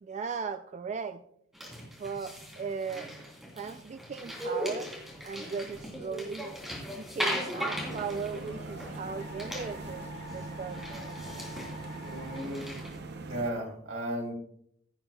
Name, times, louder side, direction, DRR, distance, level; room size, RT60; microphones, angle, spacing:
voice 1, 0.0-1.2 2.0-3.1 3.5-4.9 5.2-6.5 7.0-10.9, right 5 dB, 35° right, 10 dB, 0.3 m, -37 dB
sound 1, 1.5-9.1 9.4-10.0 10.3-10.4 10.7-12.9, equal, ahead, 3.1 m, -38 dB
Musical instrument, 7.2-12.4, left 2 dB, 75° left, 2.7 m, -47 dB
sound 2, 7.7-13.5, right 3 dB, 55° right, 0.8 m, -42 dB
voice 2, 12.0-12.7 13.3-14.3, right 1 dB, 85° right, -1 dB, 3.6 m, -35 dB
16.0 x 8.7 x 2.3 m, 0.70 s
head